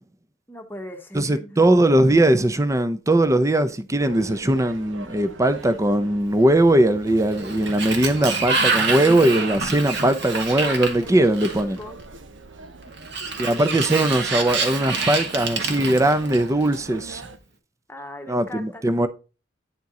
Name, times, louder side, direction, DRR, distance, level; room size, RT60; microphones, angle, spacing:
voice 1, 0.5-1.7 11.0-12.0 17.9-18.9, left 1 dB, 10° left, 1.2 m, -39 dB
voice 2, 1.1-11.8 13.4-17.2 18.3-19.1, right 1 dB, 15° right, 0.6 m, -20 dB
sound 1, 4.0-17.4, right 3 dB, 80° right, 0.9 m, -42 dB
Sliding door, 7.2-11.8 13.0-16.7, right 4 dB, 65° right, 1.6 m, -27 dB
9.6 x 4.5 x 3.8 m
head